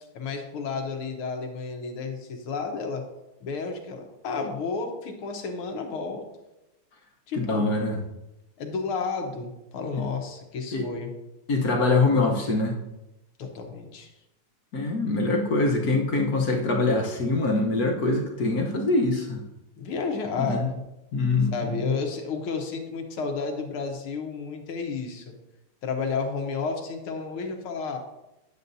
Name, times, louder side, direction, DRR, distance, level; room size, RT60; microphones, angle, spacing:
voice 1, 0.1-3.0 3.4-6.2 7.3-7.7 8.6-11.1 13.4-14.1 19.8-20.6 21.5-25.3 25.8-28.0, left 4 dB, 80° left, 3 dB, 1.9 m, -32 dB
voice 2, 7.4-8.0 10.7-10.8 11.5-12.8 14.7-19.4 20.4-20.7 21.1-21.9, left 2 dB, 50° left, 0 dB, 1.3 m, -24 dB
10.5 x 7.6 x 2.7 m, 0.94 s
omnidirectional pair, 2.3 m